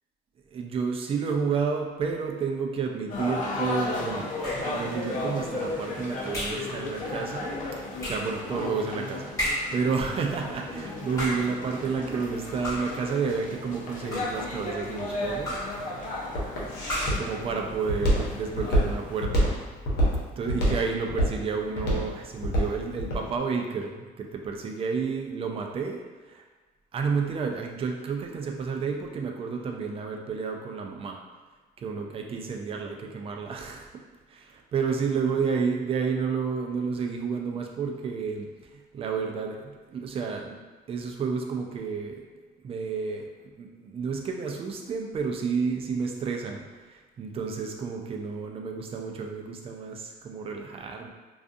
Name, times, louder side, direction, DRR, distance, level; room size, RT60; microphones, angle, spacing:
voice 1, 0.5-4.3 4.6-7.5 8.0-15.6 17.0-19.5 20.4-26.0 26.9-31.2 31.8-33.9 34.3-38.5 38.9-40.6 40.9-42.3 42.6-43.3 43.6-51.1, right 5 dB, 35° right, 2 dB, 0.4 m, -31 dB
sound 1, 3.1-19.2, left 2 dB, 50° left, 0.6 m, -35 dB
sound 2, 4.4-4.8 6.3-6.7 8.0-8.4 9.4-9.8 11.0-11.6 12.6-13.0 13.9-14.5 15.4-15.8 16.8-17.3, equal, 20° left, 1.1 m, -32 dB
Walk footsteps, 15.1-23.3, equal, 75° left, 0.9 m, -26 dB
2.4 x 2.4 x 2.5 m, 1.4 s
cardioid pair, 110°, 17 cm